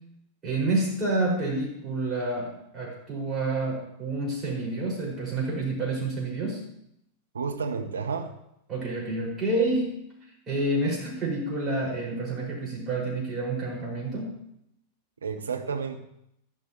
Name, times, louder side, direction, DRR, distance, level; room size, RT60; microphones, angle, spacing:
voice 1, 0.4-6.6 8.7-9.9 10.5-14.3, right 2 dB, 25° right, -4 dB, 5.8 m, -28 dB
voice 2, 7.3-8.3 15.2-16.0, right 5 dB, 70° right, 5 dB, 1.1 m, -31 dB
13.5 x 11.5 x 3.1 m, 0.76 s
figure-of-eight pair, 90°, 0 cm